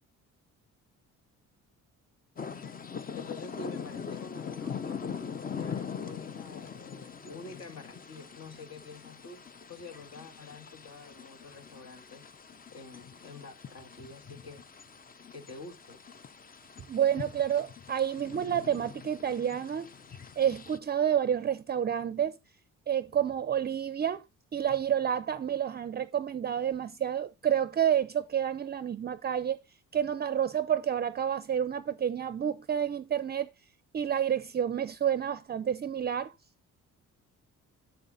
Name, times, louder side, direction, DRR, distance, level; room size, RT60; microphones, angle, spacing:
sound 1, 2.4-20.8, left 6 dB, 30° left, 0.6 m, -42 dB
voice 1, 3.2-9.4 9.7-12.3 12.7-14.6 15.3-16.0, left 3 dB, 55° left, 2.1 m, -47 dB
voice 2, 16.9-19.9 20.4-22.4 22.9-24.2 24.5-29.6 29.9-33.5 33.9-36.3, right 9 dB, 35° right, 0.5 m, -29 dB
7.6 x 7.0 x 3.9 m
cardioid pair, 90°, 30 cm